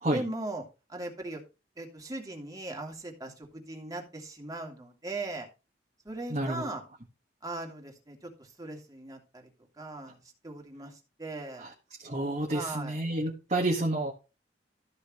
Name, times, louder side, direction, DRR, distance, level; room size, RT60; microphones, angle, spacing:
voice 1, 0.0-0.6 0.9-1.4 1.8-5.5 6.0-6.8 7.4-9.5 9.7-11.7 12.5-13.0, right 2 dB, 20° right, 1 dB, 2.8 m, -39 dB
voice 2, 6.3-6.7 12.0-14.1, right 1 dB, 40° right, 0 dB, 1.7 m, -29 dB
14.0 x 6.7 x 3.2 m, 0.30 s
head